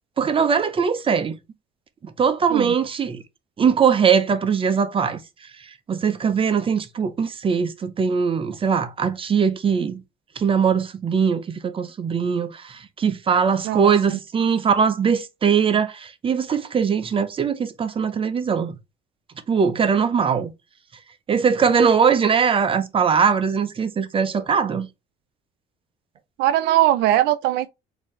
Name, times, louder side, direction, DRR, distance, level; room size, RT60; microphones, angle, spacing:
voice 1, 0.2-1.3 2.2-3.2 3.6-5.2 5.9-10.0 10.4-18.7 19.5-20.5 21.3-24.9, right 6 dB, 30° right, 0.6 m, -21 dB
voice 2, 13.6-14.2 26.4-27.7, right 14 dB, 85° right, 0.4 m, -20 dB
4.0 x 2.7 x 3.0 m
cardioid pair, 110°, 17 cm